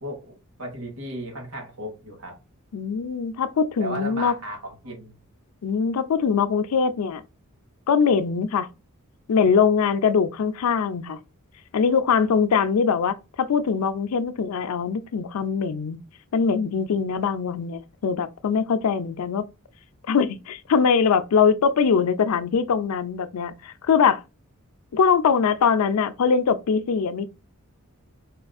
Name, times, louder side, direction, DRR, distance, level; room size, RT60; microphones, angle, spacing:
voice 1, 0.0-2.4 3.8-5.1 12.2-12.3, right 1 dB, 80° right, 1.4 m, -35 dB
voice 2, 2.7-4.3 5.6-7.2 7.9-8.7 9.3-11.2 11.7-16.0 16.3-19.5 20.0-24.2 24.9-27.3, left 6 dB, 85° left, 0.4 m, -22 dB
4.3 x 2.5 x 2.3 m
head